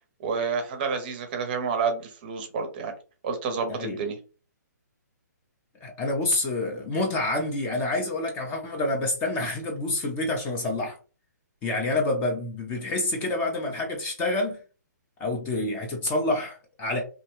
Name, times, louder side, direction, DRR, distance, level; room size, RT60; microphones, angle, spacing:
voice 1, 0.2-2.9 3.2-4.2, right 5 dB, 30° right, 0.6 m, -29 dB
voice 2, 3.7-4.0 5.8-11.0 11.6-14.6 15.2-17.0, left 2 dB, 15° left, 0.4 m, -28 dB
2.6 x 2.1 x 2.9 m
hypercardioid pair, 155°, 10 cm